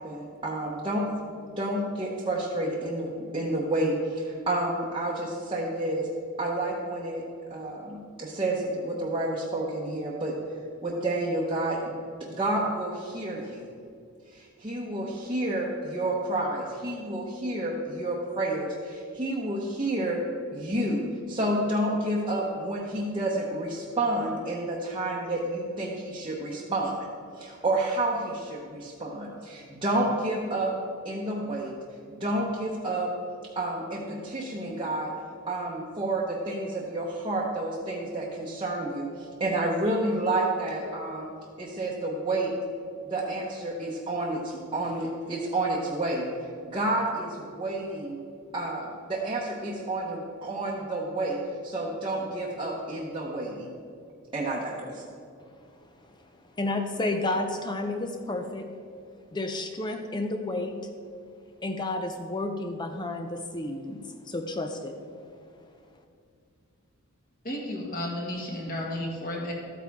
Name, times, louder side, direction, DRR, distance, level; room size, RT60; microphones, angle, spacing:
voice 1, 0.0-6.1 6.4-7.2 7.5-10.3 10.8-13.7 14.3-20.2 20.5-27.1 27.4-30.7 31.0-31.8 32.1-33.1 33.6-35.1 35.5-41.3 41.6-42.5 43.1-46.3 46.6-48.2 48.5-53.7 54.3-55.0, right 1 dB, 25° right, -5 dB, 0.9 m, -30 dB
voice 2, 56.6-58.7 59.3-60.8 61.6-65.0, left 2 dB, 20° left, 5 dB, 0.5 m, -31 dB
voice 3, 67.4-69.5, left 1 dB, 40° left, -1 dB, 1.7 m, -33 dB
13.0 x 8.7 x 3.5 m, 2.3 s
head